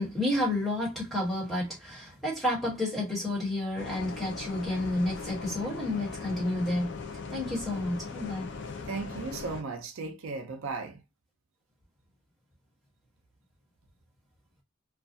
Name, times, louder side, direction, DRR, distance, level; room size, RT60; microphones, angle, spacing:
voice 1, 0.0-6.9 7.3-8.5, left 1 dB, ahead, 1.2 m, -30 dB
Bus, 3.8-9.6, left 4 dB, 55° left, 0.4 m, -39 dB
voice 2, 8.8-11.0, right 4 dB, 70° right, 0.4 m, -36 dB
2.4 x 2.3 x 2.5 m
head